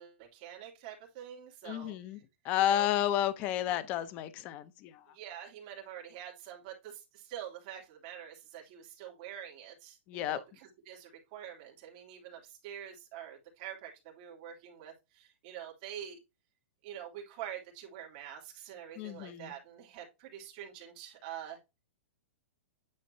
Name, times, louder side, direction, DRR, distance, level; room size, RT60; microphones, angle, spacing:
voice 1, 0.0-1.9 2.6-2.9 5.1-16.2 16.8-21.6, right 10 dB, 30° right, 2.9 m, -46 dB
voice 2, 1.6-2.2 2.4-5.0 10.1-10.4 19.0-19.5, left 12 dB, 20° left, 0.6 m, -31 dB
9.6 x 4.4 x 2.7 m
hypercardioid pair, 170°, 7 cm